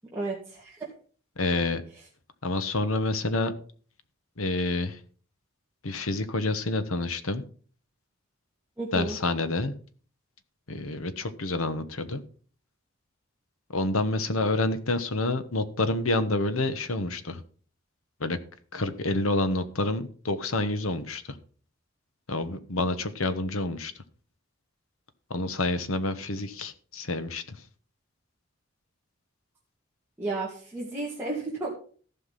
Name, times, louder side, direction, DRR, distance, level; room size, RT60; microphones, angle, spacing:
voice 1, 0.1-0.9 8.8-9.2 30.2-31.7, right 2 dB, 10° right, -5 dB, 2.4 m, -33 dB
voice 2, 1.4-1.8 2.4-3.5 4.4-5.0 5.8-7.4 8.9-9.7 10.7-12.2 13.7-17.4 18.2-18.4 18.7-21.2 22.3-23.9 25.3-27.4, left 2 dB, 80° left, 11 dB, 1.2 m, -28 dB
14.5 x 5.9 x 5.7 m, 0.43 s
head